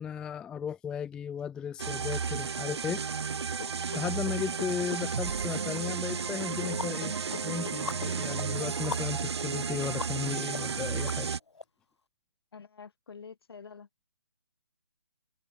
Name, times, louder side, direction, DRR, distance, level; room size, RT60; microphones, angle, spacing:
voice 1, 0.0-3.0 3.9-7.1 7.4-11.3, left 8 dB, 5° left, 0.4 m, -35 dB
sound 1, 1.8-11.4, right 6 dB, 75° right, 0.7 m, -33 dB
sound 2, 3.6-5.0 6.6-8.2, left 10 dB, 40° left, 4.7 m, -43 dB
sound 3, 5.7-5.8 6.3-11.6, left 4 dB, 90° left, 1.7 m, -43 dB
voice 2, 12.5-13.9, left 5 dB, 65° left, 7.6 m, -48 dB
hypercardioid pair, 155°, 14 cm